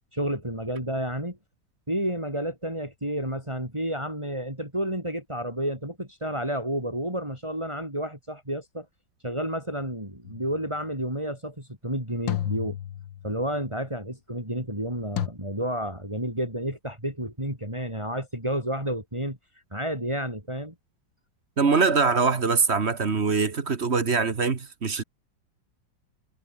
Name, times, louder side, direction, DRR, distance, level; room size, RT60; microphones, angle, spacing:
voice 1, 0.1-1.4 1.9-8.9 9.2-12.8 13.2-19.4 19.7-20.7, right 1 dB, 15° right, 7.7 m, -30 dB
sound 1, 10.2-10.7 12.3-13.5 15.2-15.3, left 10 dB, 85° left, 1.9 m, -32 dB
voice 2, 21.6-25.0, right 4 dB, 35° right, 1.7 m, -23 dB
omnidirectional pair, 2.0 m